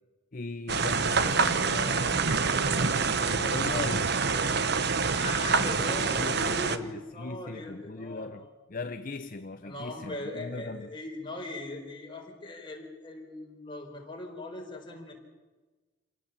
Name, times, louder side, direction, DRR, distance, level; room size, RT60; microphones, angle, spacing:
voice 1, 0.3-4.2 5.7-10.9, left 3 dB, 40° left, 0.6 m, -39 dB
sound 1, 0.7-6.8, right 5 dB, 50° right, 1.0 m, -26 dB
voice 2, 5.1-8.5 9.6-15.1, left 1 dB, 25° left, 4.4 m, -39 dB
28.0 x 18.0 x 7.3 m
head